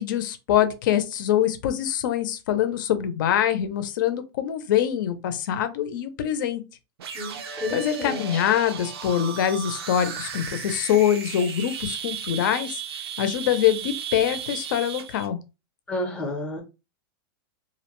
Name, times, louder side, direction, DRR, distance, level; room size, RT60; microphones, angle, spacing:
voice 1, 0.0-6.6 7.7-12.8 13.2-15.4, left 10 dB, 55° left, 0.5 m, -24 dB
sound 1, 7.0-15.3, right 7 dB, 80° right, 0.6 m, -35 dB
voice 2, 7.1-8.4 15.9-16.6, left 1 dB, 5° left, 0.6 m, -31 dB
2.4 x 2.1 x 3.0 m
supercardioid pair, 165°, 13 cm